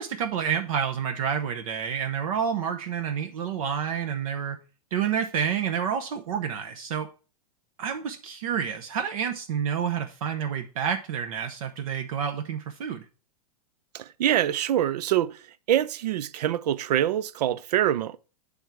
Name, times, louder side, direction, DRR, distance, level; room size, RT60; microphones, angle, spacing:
voice 1, 0.0-4.6 4.9-7.1 7.8-13.0, right 7 dB, 60° right, 0.8 m, -29 dB
voice 2, 13.9-15.4 15.7-18.2, right 11 dB, 90° right, 0.5 m, -25 dB
7.9 x 3.6 x 5.8 m
supercardioid pair, 165°, 20 cm